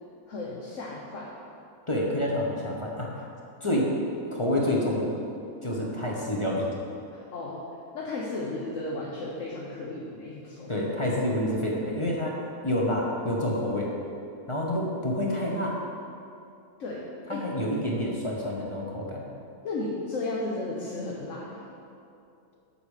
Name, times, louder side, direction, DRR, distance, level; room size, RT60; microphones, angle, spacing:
voice 1, 0.3-1.3 7.1-7.6 7.9-10.7 16.8-17.4 19.6-21.6, left 2 dB, 60° left, -4 dB, 1.2 m, -34 dB
voice 2, 1.9-3.1 3.6-3.9 4.3-5.1 5.6-6.7 10.7-12.4 12.6-13.9 14.5-15.8 17.3-19.3, left 1 dB, 25° left, -3 dB, 1.0 m, -28 dB
8.3 x 5.0 x 6.5 m, 2.6 s
omnidirectional pair, 1.5 m